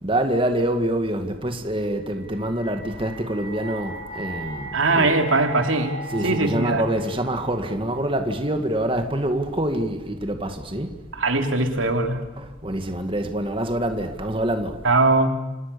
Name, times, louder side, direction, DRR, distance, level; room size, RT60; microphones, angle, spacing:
voice 1, 0.0-5.2 6.1-11.0 12.4-14.8, right 1 dB, 25° right, 2.1 m, -26 dB
sound 1, 2.0-9.1, right 2 dB, 45° left, 5.7 m, -38 dB
voice 2, 4.7-6.8 11.1-12.2 14.8-15.3, right 2 dB, 90° right, 3.2 m, -21 dB
29.5 x 27.0 x 7.0 m
head